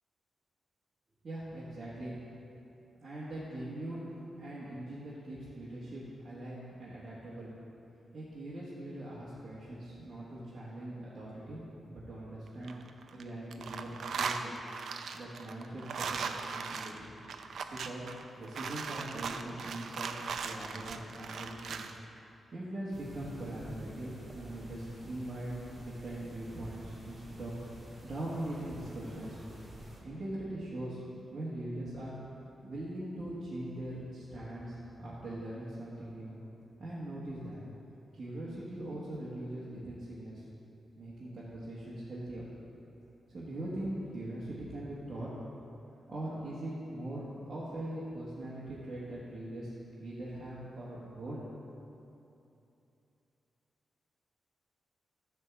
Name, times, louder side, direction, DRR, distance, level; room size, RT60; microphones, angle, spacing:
voice 1, 1.2-2.2 3.0-4.1 4.4-7.5 8.1-11.6 11.9-14.5 15.1-17.1 17.7-18.0 18.4-20.2 20.4-21.9 22.5-27.5 28.0-29.4 30.0-31.0 31.3-32.2 32.6-36.4 36.8-37.6 38.1-40.4 40.9-42.5 43.3-45.3 46.1-49.7 50.0-51.4, right 1 dB, 40° right, -9 dB, 1.4 m, -41 dB
sound 1, 12.5-13.2 13.5-22.0, right 5 dB, 70° right, 0.4 m, -38 dB
sound 2, 22.9-30.0, right 1 dB, 25° right, 1.6 m, -49 dB
10.5 x 3.5 x 7.1 m, 2.8 s
wide cardioid pair, 150°, 0 cm